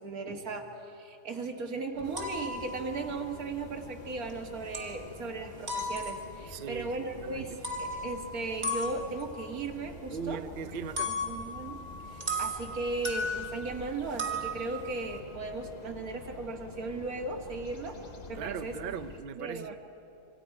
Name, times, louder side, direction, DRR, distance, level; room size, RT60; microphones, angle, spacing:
voice 1, 0.0-10.4 11.1-18.0 18.3-19.0 19.4-19.8, right 3 dB, 90° right, 3 dB, 2.1 m, -37 dB
sound 1, 1.9-19.2, left 3 dB, 35° left, 0.9 m, -48 dB
sound 2, 2.1-4.4 4.7-5.3 5.7-6.6 7.5-13.8 14.2-15.2, left 1 dB, 30° right, 1.8 m, -37 dB
voice 2, 6.5-7.6 10.1-11.1 18.3-19.8, right 7 dB, 50° right, 11 dB, 0.7 m, -39 dB
27.0 x 24.5 x 4.9 m, 2.9 s
omnidirectional pair, 1.5 m